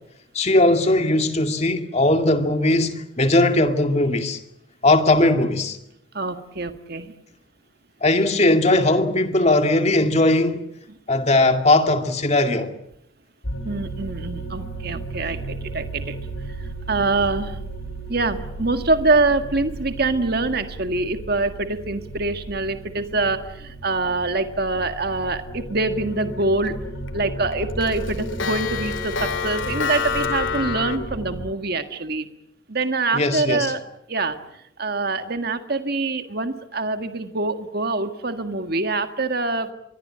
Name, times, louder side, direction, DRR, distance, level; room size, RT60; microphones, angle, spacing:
voice 1, 0.3-4.4 4.8-5.8 8.0-10.6 11.1-12.7 33.1-33.7, left 2 dB, 35° left, 2.3 m, -19 dB
voice 2, 6.1-7.1 13.6-16.2 16.6-17.6 18.1-26.8 27.1-32.3 32.7-33.8 34.1-34.4 34.8-39.7, right 3 dB, 50° right, 1.8 m, -25 dB
sound 1, 13.4-31.5, right 1 dB, 90° left, 4.0 m, -34 dB
Clock, 26.2-26.7 27.1-27.2 27.5-31.0, left 6 dB, 75° left, 2.9 m, -27 dB
25.0 x 22.0 x 8.8 m
head